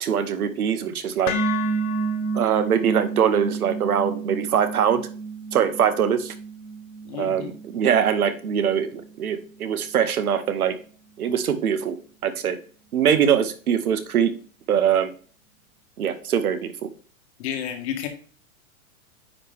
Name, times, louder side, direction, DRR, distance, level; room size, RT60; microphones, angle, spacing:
voice 1, 0.0-1.3 2.3-5.0 5.5-6.3 7.2-10.8 11.2-12.0 12.2-12.6 12.9-14.3 14.7-15.1 16.0-16.9, right 8 dB, 90° right, 11 dB, 1.1 m, -22 dB
sound 1, 1.3-9.4, right 3 dB, 30° left, 0.8 m, -30 dB
voice 2, 7.0-7.5 17.4-18.1, left 9 dB, 50° left, 5 dB, 1.5 m, -31 dB
9.4 x 3.2 x 3.4 m, 0.40 s
hypercardioid pair, 140°, 42 cm